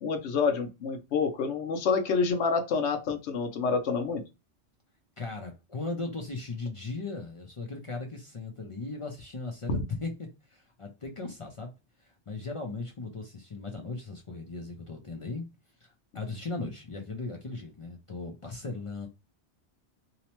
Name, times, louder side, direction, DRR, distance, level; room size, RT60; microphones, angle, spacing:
voice 1, 0.0-4.2 9.7-9.8, left 5 dB, 80° left, 0.9 m, -28 dB
voice 2, 5.2-10.1 10.5-11.7 12.0-15.5 15.8-19.1, left 3 dB, 45° left, 0.4 m, -37 dB
2.8 x 2.0 x 2.9 m
omnidirectional pair, 1.1 m